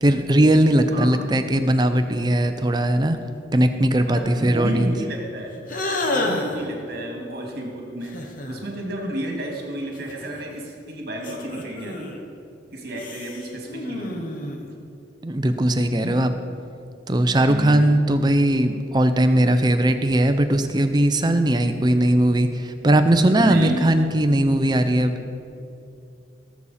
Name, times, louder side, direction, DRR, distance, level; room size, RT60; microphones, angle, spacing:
voice 1, 0.0-3.2 3.5-4.9 15.2-16.3 17.1-25.2, right 1 dB, 20° right, 8 dB, 0.5 m, -19 dB
voice 2, 0.9-1.2 4.1-5.5 6.1-8.2 8.5-12.2 12.7-14.3 17.5-17.9 23.4-23.9, right 1 dB, 50° right, 0 dB, 2.2 m, -31 dB
sound 1, 5.7-6.7 8.0-8.7 9.9-10.7 11.2-12.2 12.9-14.7, left 2 dB, 45° left, 1.1 m, -29 dB
17.5 x 7.1 x 4.2 m, 2.7 s
head